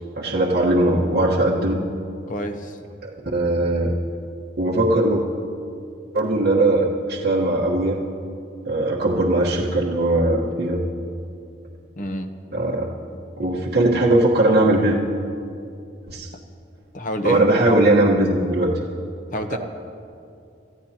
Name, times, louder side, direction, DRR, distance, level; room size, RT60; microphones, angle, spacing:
voice 1, 0.1-1.8 3.0-3.9 4.6-5.2 6.1-8.0 8.6-10.8 12.5-12.9 13.4-15.0 16.1-16.3 17.2-18.7 19.5-19.6, right 1 dB, 55° right, -5 dB, 1.3 m, -19 dB
voice 2, 2.3-2.8 11.9-12.3 16.9-17.5 19.3-19.6, left 1 dB, 45° left, 6 dB, 0.9 m, -28 dB
28.0 x 14.0 x 2.9 m, 2.5 s
head